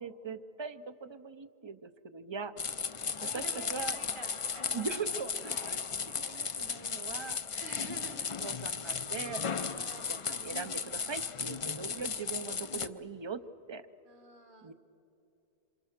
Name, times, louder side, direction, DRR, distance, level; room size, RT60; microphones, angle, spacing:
voice 1, 0.0-2.5 3.3-4.0 4.7-5.8 6.1-7.4 8.4-9.4 10.1-13.4 13.7-13.8 14.6-14.7, right 5 dB, 30° right, 12 dB, 0.6 m, -41 dB
sound 1, 2.6-12.9, left 6 dB, 40° left, 0.5 m, -36 dB
voice 2, 3.2-4.9 5.4-5.6 6.3-6.7 7.6-8.3 9.7-10.3 14.0-14.7, right 4 dB, 50° right, 8 dB, 1.5 m, -50 dB
27.5 x 24.0 x 6.6 m, 2.8 s
omnidirectional pair, 1.1 m